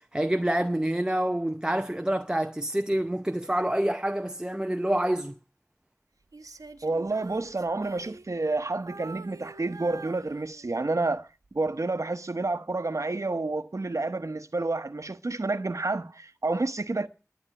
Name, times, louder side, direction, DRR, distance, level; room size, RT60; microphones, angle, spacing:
voice 1, 0.0-5.3, right 1 dB, 15° right, 0.7 m, -27 dB
Female singing, 6.3-8.6 8.9-10.9 11.4-11.7, right 3 dB, 80° right, 1.0 m, -46 dB
voice 2, 6.8-11.3 11.5-17.1, right 2 dB, 60° right, 1.0 m, -29 dB
11.0 x 8.1 x 9.7 m
wide cardioid pair, 55°, 6 cm